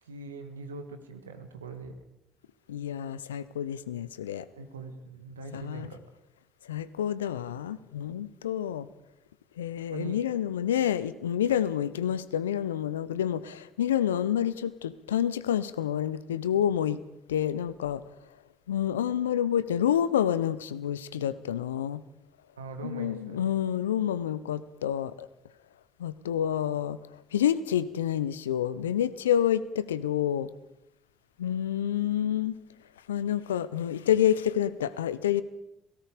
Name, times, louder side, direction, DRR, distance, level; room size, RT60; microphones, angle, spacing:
voice 1, 0.0-2.0 4.5-6.0 9.9-10.2 22.6-23.4, right 4 dB, 85° right, 7 dB, 1.8 m, -41 dB
voice 2, 2.7-4.5 5.5-5.9 6.7-8.9 9.6-17.0 17.3-18.0 18.7-22.0 22.8-25.3 26.0-27.0 27.3-30.5 31.4-32.6 33.1-35.4, left 10 dB, 85° left, 17 dB, 0.8 m, -28 dB
29.5 x 18.0 x 5.1 m, 0.85 s
figure-of-eight pair, 50°, 0 cm